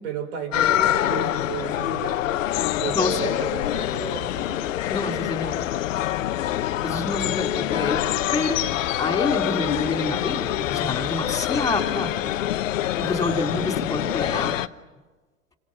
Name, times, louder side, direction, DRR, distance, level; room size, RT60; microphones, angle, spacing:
voice 1, 0.0-2.4 2.8-4.7, right 7 dB, 60° right, 9 dB, 6.0 m, -33 dB
sound 1, 0.5-14.7, left 13 dB, 70° left, 1.1 m, -26 dB
sound 2, 2.5-11.8, left 14 dB, 40° left, 1.9 m, -36 dB
voice 2, 2.9-3.3 4.9-5.6 6.8-8.0 8.3-8.7 9.0-12.3 13.0-14.5, left 3 dB, 10° left, 4 dB, 4.2 m, -27 dB
sound 3, 8.1-9.1 9.5-9.6 11.4-12.6 13.0-13.9, left 1 dB, 80° right, 5.9 m, -44 dB
30.0 x 26.5 x 5.9 m, 1.3 s
hypercardioid pair, 105°, 40 cm